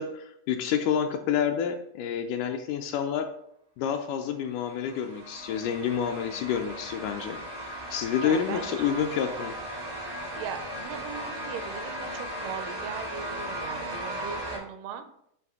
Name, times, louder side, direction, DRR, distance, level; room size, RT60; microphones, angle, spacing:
voice 1, 0.0-3.3 3.8-7.4 7.9-9.6, left 8 dB, 80° left, 6 dB, 1.9 m, -28 dB
sound 1, 4.5-14.6, equal, 40° right, 0.5 m, -37 dB
voice 2, 8.2-9.1 10.3-15.0, right 7 dB, 80° right, 9 dB, 2.1 m, -39 dB
9.4 x 3.3 x 3.5 m, 0.75 s
omnidirectional pair, 3.9 m